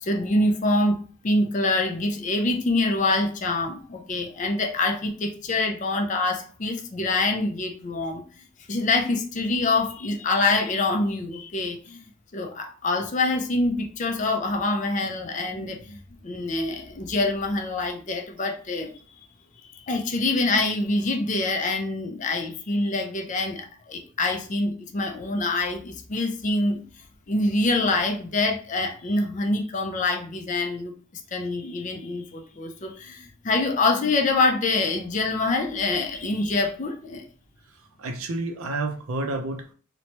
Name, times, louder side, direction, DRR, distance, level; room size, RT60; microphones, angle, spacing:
voice 1, 0.0-8.2 8.7-12.1 12.3-18.9 19.6-26.8 27.3-30.9 31.3-37.3, left 2 dB, 35° left, 3 dB, 0.4 m, -25 dB
voice 2, 38.0-39.7, right 2 dB, 85° right, 5 dB, 0.5 m, -30 dB
3.0 x 2.1 x 2.8 m, 0.41 s
head